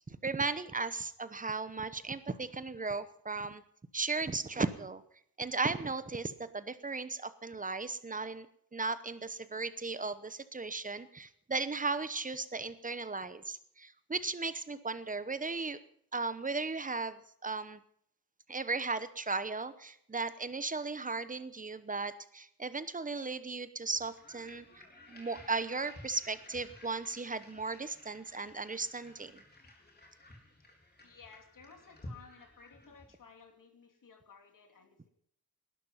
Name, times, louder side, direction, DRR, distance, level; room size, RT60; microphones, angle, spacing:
voice 1, 0.1-3.6 3.9-5.0 5.4-8.5 8.7-15.8 16.1-17.8 18.5-24.8 25.1-29.4, right 3 dB, 20° right, 13 dB, 0.9 m, -36 dB
sound 1, 23.9-33.2, left 1 dB, 25° left, 3.7 m, -54 dB
voice 2, 31.0-35.1, left 5 dB, 55° left, 5 dB, 2.8 m, -56 dB
19.0 x 12.0 x 5.7 m, 0.65 s
wide cardioid pair, 165°, 38 cm